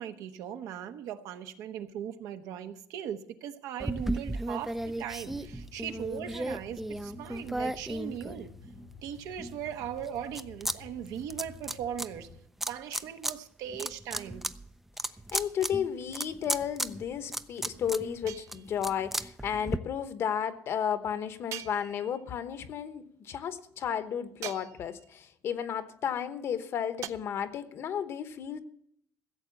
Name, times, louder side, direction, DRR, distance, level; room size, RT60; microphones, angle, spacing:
voice 1, 0.0-8.5 9.0-12.3 12.7-14.5, right 9 dB, 75° right, 8 dB, 1.1 m, -39 dB
sound 1, 3.8-8.9 9.4-10.8 11.0-12.1 12.6-13.3 13.7-19.8, right 1 dB, 5° right, 0.4 m, -35 dB
sound 2, 4.8-12.4, left 6 dB, 70° left, 2.0 m, -51 dB
voice 2, 15.3-28.6, left 8 dB, 45° left, 11 dB, 1.0 m, -33 dB
sound 3, 15.3-16.1 18.3-19.0 21.5-22.4 24.4-25.2 27.0-27.1, right 12 dB, 60° right, 0.6 m, -44 dB
15.5 x 7.8 x 7.2 m, 0.70 s
cardioid pair, 150°, 6 cm